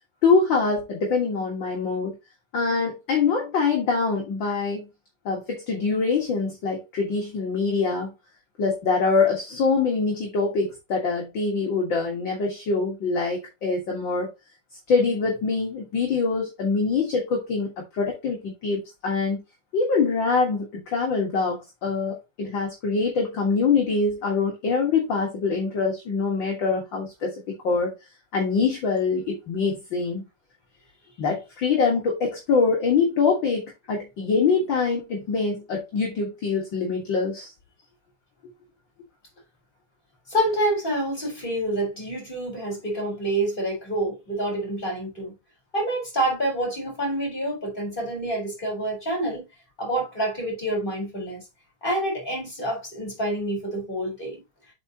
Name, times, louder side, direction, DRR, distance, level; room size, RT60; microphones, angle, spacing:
voice 1, 0.2-2.1 2.5-4.9 5.2-8.1 8.6-14.3 14.9-19.4 19.7-27.3 27.6-27.9 28.3-30.2 31.2-37.5, left 4 dB, 45° left, 1.9 m, -24 dB
voice 2, 40.3-45.3 45.7-49.5 49.8-51.4 51.8-54.4, right 1 dB, 15° left, 4.0 m, -27 dB
7.8 x 5.7 x 2.8 m
omnidirectional pair, 3.5 m